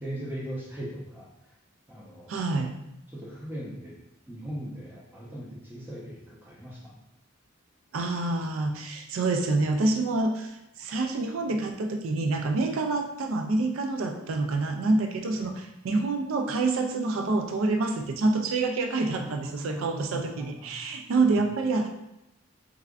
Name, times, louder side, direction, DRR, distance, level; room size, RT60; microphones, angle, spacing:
voice 1, 0.0-1.3 1.9-2.6 3.1-3.9 4.3-6.9 15.3-15.4 19.1-20.7, right 1 dB, 10° right, -5 dB, 0.7 m, -39 dB
voice 2, 2.3-2.7 7.9-21.9, right 3 dB, 80° right, 4 dB, 0.4 m, -27 dB
3.6 x 3.3 x 2.4 m, 0.87 s
head